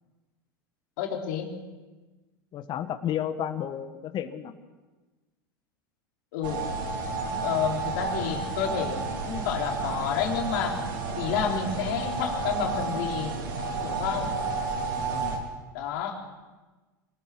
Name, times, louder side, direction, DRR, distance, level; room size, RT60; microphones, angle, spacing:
voice 1, 1.0-1.5 6.3-6.7 7.4-10.8 11.2-13.4 13.8-14.3 15.7-16.2, left 7 dB, 65° left, 1 dB, 3.8 m, -30 dB
voice 2, 2.5-4.5 14.1-14.3 15.1-15.4, left 10 dB, 40° left, 9 dB, 1.5 m, -32 dB
sound 1, 6.4-15.4, right 3 dB, 75° right, 4.1 m, -31 dB
25.0 x 19.0 x 6.2 m, 1.2 s
hypercardioid pair, 90°, 11 cm